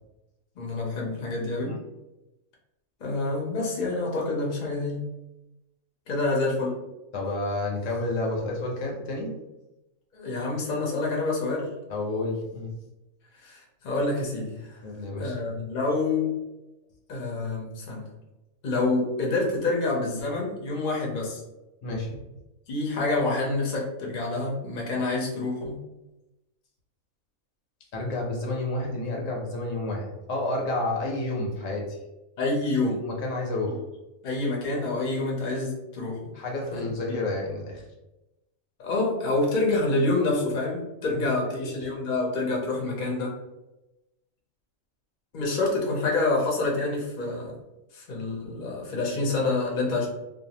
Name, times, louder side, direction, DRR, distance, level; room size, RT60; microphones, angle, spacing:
voice 1, 0.6-1.7 3.0-5.0 6.1-6.8 10.1-11.7 13.3-14.8 15.2-16.3 17.1-18.0 18.6-21.4 22.7-25.8 32.4-33.0 34.2-36.3 36.7-37.2 38.8-43.3 45.3-47.5 47.9-50.1, left 2 dB, 45° left, -2 dB, 0.6 m, -27 dB
voice 2, 7.1-9.3 11.9-12.7 14.8-15.4 21.8-22.2 27.9-32.0 33.0-33.8 36.3-37.8 41.2-41.7, left 2 dB, 70° left, -1 dB, 1.0 m, -30 dB
2.6 x 2.2 x 2.8 m, 0.98 s
omnidirectional pair, 1.4 m